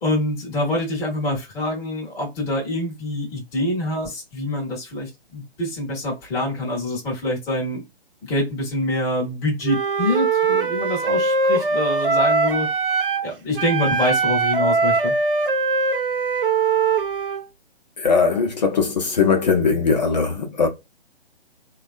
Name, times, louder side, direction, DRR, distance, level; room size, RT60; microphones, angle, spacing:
voice 1, 0.0-7.8 8.2-12.7 13.2-15.1, left 1 dB, 10° left, 0.7 m, -25 dB
Wind instrument woodwind instrument, 9.6-13.3 13.5-17.4, right 4 dB, 55° right, 0.8 m, -21 dB
voice 2, 18.0-20.7, left 5 dB, 40° left, 0.7 m, -20 dB
3.3 x 2.3 x 2.3 m
figure-of-eight pair, 140°, 33 cm